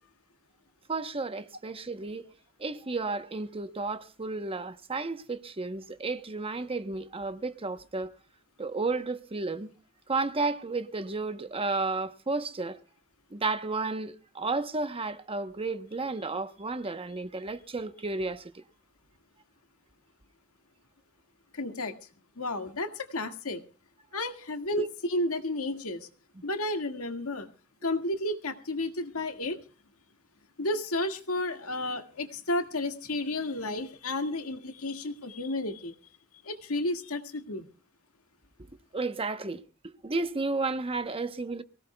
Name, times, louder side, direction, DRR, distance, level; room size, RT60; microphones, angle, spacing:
voice 1, 0.9-2.2 2.6-8.1 8.6-9.7 10.1-12.8 13.3-18.5 24.7-24.9 38.9-41.6, right 3 dB, 25° right, 0.9 m, -32 dB
voice 2, 21.5-21.9 22.4-23.6 24.1-26.1 26.4-27.5 27.8-29.6 30.6-35.9 36.4-37.7, left 2 dB, 80° left, 1.9 m, -32 dB
24.0 x 17.5 x 2.3 m
head